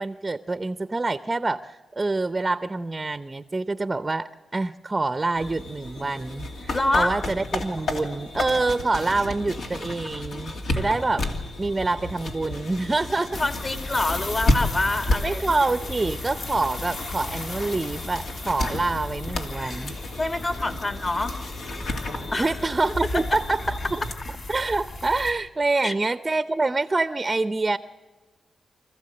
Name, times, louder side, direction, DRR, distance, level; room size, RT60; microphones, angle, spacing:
voice 1, 0.0-11.3 11.6-13.5 15.2-20.0 22.4-24.0 24.5-27.8, right 3 dB, 25° right, 11 dB, 0.6 m, -26 dB
sound 1, 5.3-24.1, left 1 dB, 75° left, 2.6 m, -32 dB
voice 2, 6.7-7.1 13.4-15.4 20.2-21.3 22.3-22.6 23.1-23.4 25.8-25.9, left 2 dB, 35° left, 5 dB, 2.1 m, -26 dB
sound 2, 13.3-25.3, left 2 dB, 60° left, 4.9 m, -36 dB
26.0 x 15.0 x 7.7 m, 1.3 s
cardioid pair, 85°, 0 cm